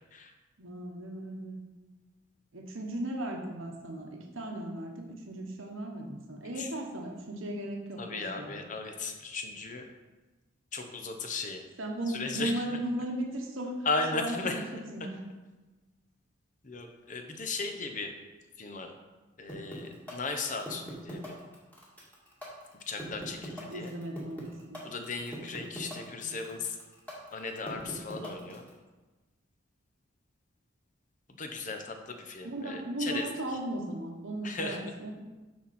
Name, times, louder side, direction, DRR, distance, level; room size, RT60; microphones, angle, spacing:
voice 1, 0.6-1.6 2.5-8.5 11.8-13.7 14.1-15.2 23.7-24.9 26.0-26.4 32.4-35.1, right 1 dB, 80° right, 1 dB, 1.1 m, -36 dB
voice 2, 8.0-9.9 10.7-11.6 12.1-12.6 13.8-14.8 16.6-18.1 18.6-18.9 19.4-21.4 22.7-23.9 24.8-26.8 27.3-28.6 31.4-33.6 34.4-34.8, left 3 dB, 40° left, 5 dB, 0.8 m, -36 dB
sound 1, 19.5-28.7, equal, 10° left, 1.8 m, -42 dB
12.0 x 4.3 x 4.2 m, 1.2 s
head